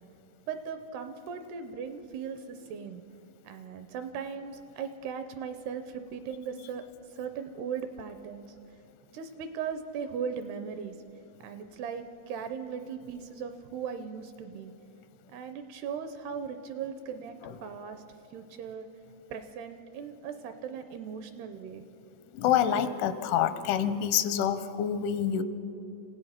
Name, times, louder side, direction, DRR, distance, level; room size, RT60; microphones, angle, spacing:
voice 1, 0.5-3.0 3.4-6.8 7.1-8.6 9.1-11.0 11.4-14.7 15.3-17.4 17.6-18.0 18.3-18.9 19.3-21.8, right 6 dB, 80° right, 9 dB, 2.5 m, -38 dB
voice 2, 22.3-25.4, left 9 dB, 85° left, 12 dB, 3.3 m, -27 dB
27.5 x 16.5 x 5.8 m, 2.9 s
omnidirectional pair, 5.3 m